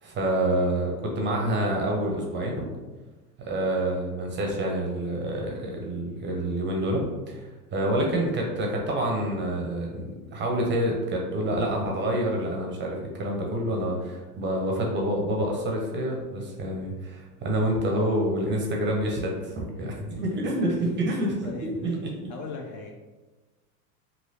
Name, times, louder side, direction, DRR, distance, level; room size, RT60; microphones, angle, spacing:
voice 1, 0.0-2.7 3.4-22.1, right 1 dB, 25° right, 0 dB, 0.6 m, -27 dB
voice 2, 19.8-20.2 20.5-22.9, left 3 dB, 40° left, 1 dB, 0.6 m, -41 dB
3.1 x 2.7 x 2.7 m, 1.2 s
hypercardioid pair, 95°, 47 cm